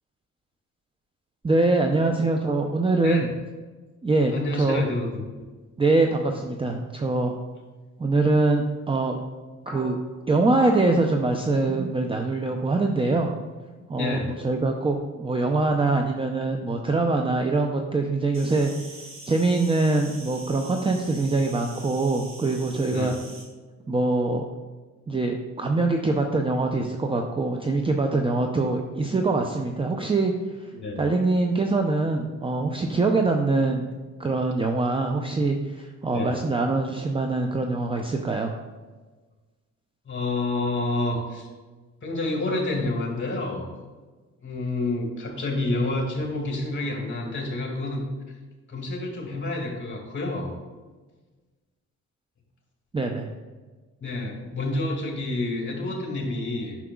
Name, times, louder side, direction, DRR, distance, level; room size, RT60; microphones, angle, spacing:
voice 1, 1.4-3.3 4.0-4.8 5.8-7.4 8.0-9.2 9.7-10.0 10.3-13.3 13.9-18.7 19.3-23.2 23.9-24.5 25.1-30.3 30.6-30.7 31.0-33.9 34.2-38.5 52.9-53.3, right 3 dB, 20° right, 3 dB, 0.5 m, -23 dB
voice 2, 4.3-5.2 14.0-14.3 22.9-23.1 30.7-31.0 36.1-36.3 40.1-41.5 42.0-43.7 44.4-48.0 48.7-50.5 54.0-56.8, left 2 dB, 40° left, 0 dB, 2.1 m, -28 dB
sound 1, 9.7-12.5 12.8-13.0 13.7-14.1, right 1 dB, 10° left, 1.6 m, -39 dB
Insect, 18.3-23.4, right 2 dB, 45° right, 2.2 m, -44 dB
9.7 x 5.9 x 2.3 m, 1.3 s
cardioid pair, 90°, 30 cm